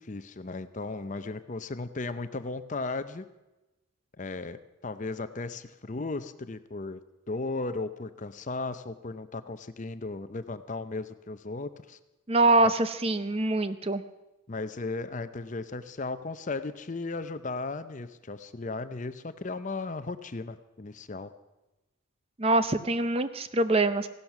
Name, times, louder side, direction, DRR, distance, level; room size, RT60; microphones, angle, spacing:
voice 1, 0.0-3.2 4.2-7.0 7.3-12.0 14.5-21.3, left 3 dB, 35° left, 12 dB, 0.6 m, -36 dB
voice 2, 12.3-14.0 22.4-24.1, right 2 dB, 30° right, 12 dB, 0.6 m, -24 dB
16.0 x 12.0 x 5.9 m, 1.0 s
head